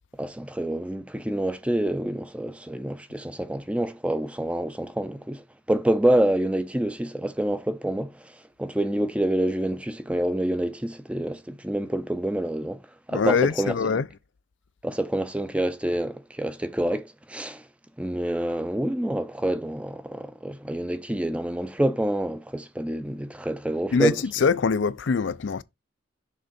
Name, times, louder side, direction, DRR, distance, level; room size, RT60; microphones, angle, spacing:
voice 1, 0.2-8.3 8.6-12.8 13.1-13.7 14.8-17.6 18.0-24.2, right 1 dB, 5° right, 0.5 m, -27 dB
voice 2, 13.1-14.1 23.9-25.6, left 5 dB, 75° left, 0.5 m, -23 dB
6.4 x 3.7 x 5.1 m
head